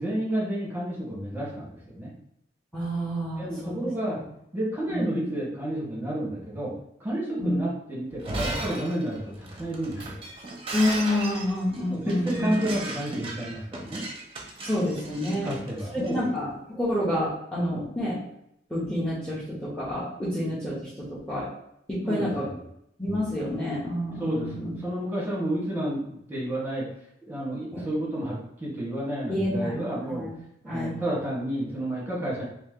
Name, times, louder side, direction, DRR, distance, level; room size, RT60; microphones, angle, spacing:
voice 1, 0.0-2.1 3.3-4.2 4.5-6.7 7.0-10.2 11.9-14.0 15.2-16.2 22.0-22.6 24.2-26.0 26.3-26.9 27.3-30.2 30.6-32.4, right 1 dB, 10° right, -6 dB, 1.3 m, -30 dB
voice 2, 2.7-3.9 4.9-5.1 7.4-7.6 10.7-12.5 14.6-15.5 15.9-18.2 18.7-21.5 21.9-22.5 23.0-24.8 27.7-27.8 29.3-29.8 30.1-30.3 30.7-30.9, left 1 dB, 5° left, -9 dB, 1.0 m, -28 dB
Shatter, 8.1-16.2, right 2 dB, 30° right, 0.7 m, -36 dB
3.1 x 2.8 x 3.7 m, 0.77 s
head